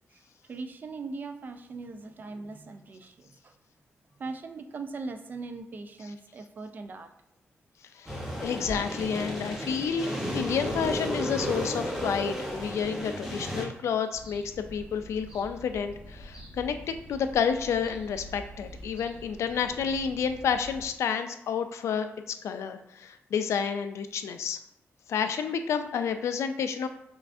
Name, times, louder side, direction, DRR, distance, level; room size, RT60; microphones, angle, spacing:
voice 1, 0.5-3.5 4.2-7.1, right 3 dB, 40° right, 7 dB, 0.4 m, -40 dB
voice 2, 7.9-10.1 10.3-24.6 25.1-26.9, left 7 dB, 80° left, 9 dB, 0.3 m, -30 dB
sound 1, 8.1-13.6, equal, 5° right, 0.9 m, -33 dB
sound 2, 14.1-20.9, equal, 20° right, 1.2 m, -46 dB
5.6 x 2.5 x 2.5 m, 0.76 s
wide cardioid pair, 135°, 5 cm